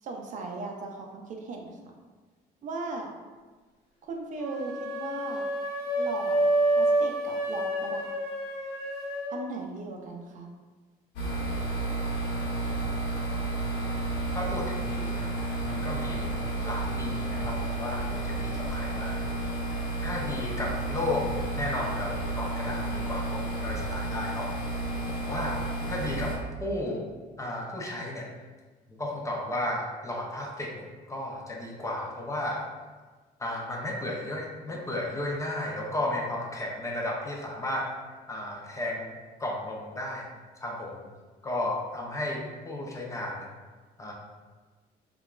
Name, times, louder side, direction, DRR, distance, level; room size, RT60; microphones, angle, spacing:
voice 1, 0.0-1.9 2.6-3.1 4.0-5.5 6.0-6.4 6.8-8.1 9.3-10.5, right 3 dB, 50° right, 2 dB, 0.4 m, -37 dB
sound 1, 4.4-9.3, right 1 dB, 50° left, 1.0 m, -28 dB
sound 2, 11.2-26.4, right 2 dB, 90° left, 0.7 m, -31 dB
voice 2, 14.3-15.3 15.7-19.1 20.0-24.7 25.3-25.6 25.9-27.1 27.4-28.3 29.0-32.6 33.4-37.9 38.3-40.3 40.6-41.1 41.4-43.5 44.0-44.1, left 1 dB, 20° left, -1 dB, 0.4 m, -34 dB
2.8 x 2.2 x 2.3 m, 1.3 s
cardioid pair, 110°, 17 cm